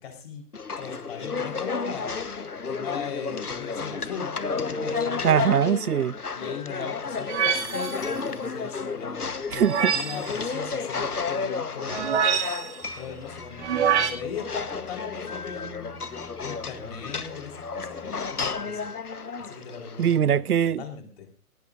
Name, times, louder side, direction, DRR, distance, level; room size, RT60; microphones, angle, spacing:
voice 1, 0.0-0.4 0.8-2.1 2.7-5.2 6.3-12.4 13.0-16.0 16.4-18.9 19.4-21.3, left 7 dB, 45° left, 4.3 m, -39 dB
sound 1, 0.5-20.2, left 4 dB, 85° left, 1.2 m, -32 dB
voice 2, 5.2-6.2 9.5-9.9 20.0-20.8, right 9 dB, 80° right, 0.6 m, -22 dB
sound 2, 7.3-8.1 9.5-10.3 11.9-12.8 13.6-14.1, right 8 dB, 50° right, 2.1 m, -25 dB
sound 3, 12.8-18.1, left 6 dB, ahead, 2.6 m, -50 dB
18.5 x 18.0 x 2.6 m
figure-of-eight pair, 130°, 45 cm